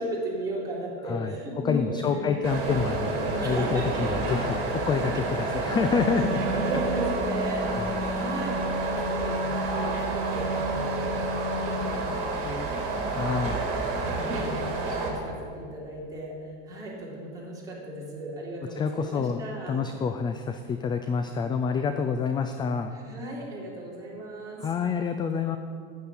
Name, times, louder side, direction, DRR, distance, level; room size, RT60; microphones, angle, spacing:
voice 1, 0.0-2.4 3.4-4.1 5.2-5.3 6.2-6.3 6.6-11.1 11.5-16.4 16.6-19.9 22.9-24.7, right 1 dB, 10° right, -6 dB, 3.6 m, -36 dB
voice 2, 1.6-6.4 7.7-8.0 13.2-13.6 18.8-22.9 24.6-25.6, left 6 dB, 15° left, 8 dB, 0.4 m, -28 dB
sound 1, 2.4-15.1, right 3 dB, 45° right, 3.3 m, -30 dB
Wind instrument woodwind instrument, 5.8-11.9, right 2 dB, 90° right, 1.1 m, -32 dB
9.5 x 7.5 x 8.5 m, 2.2 s
supercardioid pair, 130°, 30 cm